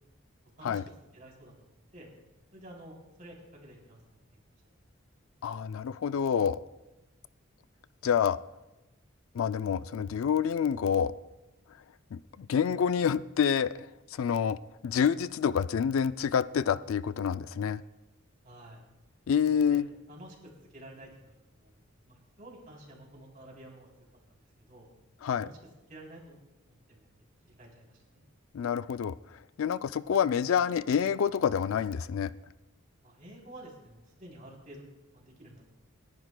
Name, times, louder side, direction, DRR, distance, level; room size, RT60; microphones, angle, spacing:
voice 1, 1.1-2.1 2.5-4.2 18.4-18.8 19.4-19.8 20.1-21.3 21.6-23.9 24.3-24.4 24.7-24.9 25.4-25.6 25.9-28.2 33.0-35.7, right 1 dB, 40° right, -1 dB, 3.2 m, -51 dB
voice 2, 5.4-6.6 8.0-8.4 9.3-11.1 12.1-13.7 14.1-14.6 14.8-17.8 19.3-19.9 25.2-25.5 28.5-29.2 29.6-32.3, left 7 dB, 85° left, 15 dB, 0.4 m, -27 dB
28.5 x 11.0 x 2.2 m, 1.0 s
head